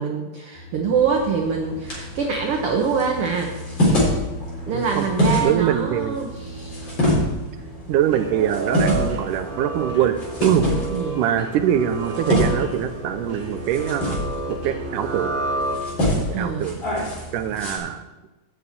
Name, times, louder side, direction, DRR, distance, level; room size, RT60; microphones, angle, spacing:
voice 1, 0.0-3.5 3.9-4.1 4.7-6.9 10.9-11.2 16.3-16.7, right 5 dB, 65° right, 2 dB, 1.5 m, -25 dB
sound 1, 0.5-17.5, right 1 dB, 20° left, 1.9 m, -40 dB
sound 2, 0.9-17.8, left 1 dB, 35° left, 4.5 m, -27 dB
voice 2, 4.7-5.1 5.4-6.2 7.9-10.2 10.4-10.7 11.2-14.2 14.5-15.3 16.2-16.8 17.3-18.0, right 10 dB, 85° right, 9 dB, 2.3 m, -23 dB
sound 3, 8.0-16.2, right 2 dB, 45° right, 1.1 m, -31 dB
8.6 x 6.9 x 8.4 m, 1.1 s
omnidirectional pair, 3.7 m